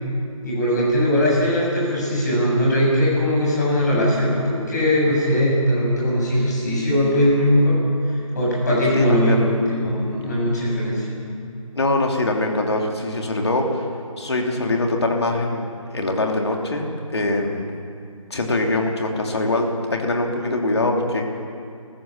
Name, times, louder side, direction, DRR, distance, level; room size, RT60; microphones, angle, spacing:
voice 1, 0.4-7.8 8.0-11.2, equal, 30° left, -4 dB, 7.4 m, -20 dB
voice 2, 8.9-9.4 11.7-13.9 14.2-17.7 18.3-21.2, left 2 dB, 50° left, 1 dB, 3.0 m, -23 dB
24.5 x 15.0 x 7.2 m, 2.4 s
figure-of-eight pair, 160°, 18 cm